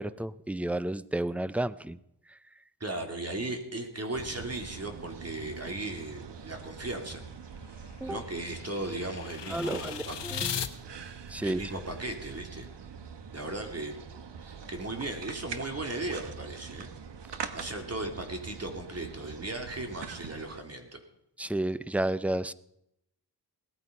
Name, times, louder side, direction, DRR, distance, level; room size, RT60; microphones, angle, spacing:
voice 1, 0.0-2.0 2.3-2.4 8.0-8.2 9.5-10.7 11.3-11.7 21.4-22.5, right 1 dB, 5° right, 17 dB, 0.5 m, -32 dB
voice 2, 2.8-7.2 8.1-10.2 11.4-12.7 13.3-14.0 14.4-17.0 17.5-21.0, right 2 dB, 35° right, 4 dB, 3.0 m, -37 dB
sound 1, 4.1-20.6, right 6 dB, 80° right, 1.3 m, -44 dB
sound 2, 7.1-10.7, left 8 dB, 85° left, 1.2 m, -38 dB
18.0 x 13.5 x 5.4 m, 0.78 s
wide cardioid pair, 95°, 42 cm